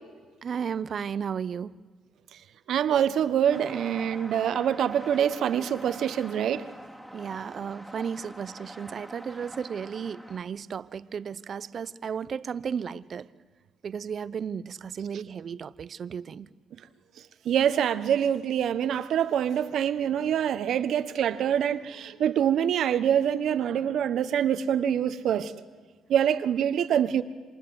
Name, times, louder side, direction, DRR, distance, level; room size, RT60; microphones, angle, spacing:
voice 1, 0.4-1.7 7.1-13.3 13.8-16.5, right 7 dB, 50° right, 0.8 m, -34 dB
voice 2, 2.7-6.7 17.4-25.5 26.1-27.2, right 9 dB, 70° right, 1.3 m, -25 dB
sound 1, 3.5-10.4, equal, 5° left, 2.9 m, -44 dB
28.0 x 26.5 x 8.0 m
cardioid pair, 90°, 0 cm